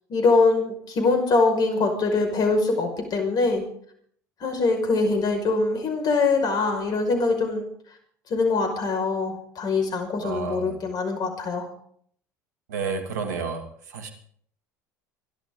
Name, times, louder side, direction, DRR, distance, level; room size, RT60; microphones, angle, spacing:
voice 1, 0.1-3.6 4.4-7.7 8.3-11.7, left 3 dB, 45° left, 4 dB, 5.6 m, -23 dB
voice 2, 10.2-10.8 12.7-14.1, right 5 dB, 80° right, 5 dB, 2.6 m, -31 dB
26.5 x 12.0 x 3.9 m, 0.63 s
hypercardioid pair, 70°, 9 cm